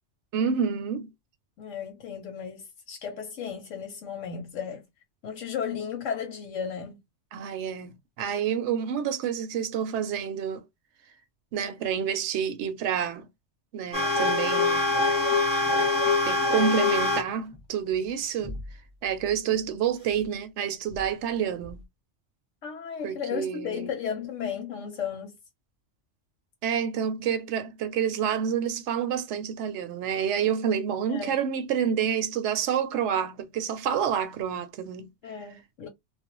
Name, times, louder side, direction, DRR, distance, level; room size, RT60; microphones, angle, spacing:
voice 1, 0.3-1.1 7.3-10.6 11.5-13.3 13.7-14.9 16.3-18.6 19.0-21.8 23.0-23.9 26.6-35.1, right 8 dB, 70° right, 0.8 m, -28 dB
voice 2, 1.6-4.9 5.2-7.0 22.6-25.4 31.1-31.3 35.2-35.9, left 7 dB, 90° left, 1.0 m, -34 dB
sound 1, 13.9-17.2 17.5-17.6 18.4-18.7 20.9-21.0 21.6-21.7, left 3 dB, 5° right, 0.8 m, -24 dB
2.4 x 2.1 x 2.9 m
omnidirectional pair, 1.2 m